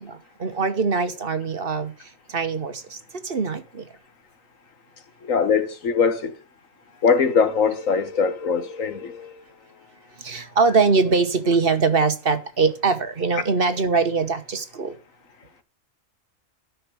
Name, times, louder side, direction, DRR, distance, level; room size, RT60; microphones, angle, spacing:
voice 1, 0.1-1.9 2.3-3.9 10.2-14.9, right 4 dB, 45° right, 1.3 m, -22 dB
voice 2, 5.2-6.3 7.0-9.4, left 5 dB, 85° left, 1.7 m, -21 dB
12.5 x 6.0 x 6.9 m
omnidirectional pair, 1.3 m